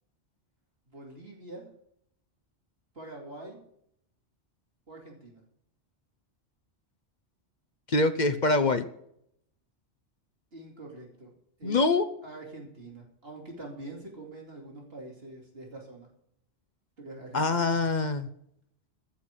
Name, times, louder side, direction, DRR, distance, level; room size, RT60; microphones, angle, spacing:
voice 1, 0.9-1.7 2.9-3.6 4.9-5.4 10.5-11.3 11.6-11.8 12.2-16.1 17.0-17.6, right 2 dB, 60° right, 0 dB, 2.9 m, -44 dB
voice 2, 7.9-8.9 11.6-12.1 17.3-18.3, left 3 dB, 45° left, 11 dB, 0.9 m, -24 dB
14.0 x 6.0 x 9.0 m, 0.72 s
omnidirectional pair, 1.2 m